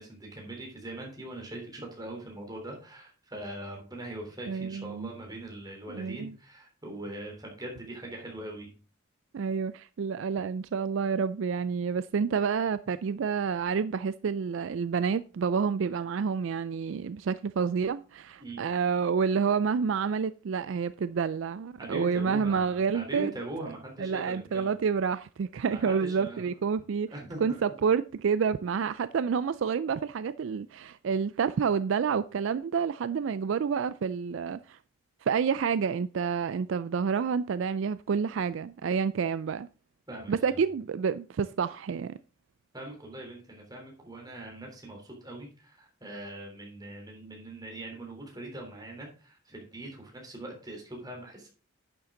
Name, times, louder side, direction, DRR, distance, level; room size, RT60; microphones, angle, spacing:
voice 1, 0.0-8.7 18.4-18.6 21.8-24.7 25.7-26.5 27.1-27.6 40.1-40.3 42.7-51.5, right 1 dB, 20° right, 3.5 m, -41 dB
voice 2, 4.5-5.1 5.9-6.4 9.3-23.3 24.0-27.1 27.4-34.8 35.2-39.7 40.3-42.2, right 6 dB, 60° right, 0.3 m, -29 dB
11.0 x 7.1 x 3.8 m
head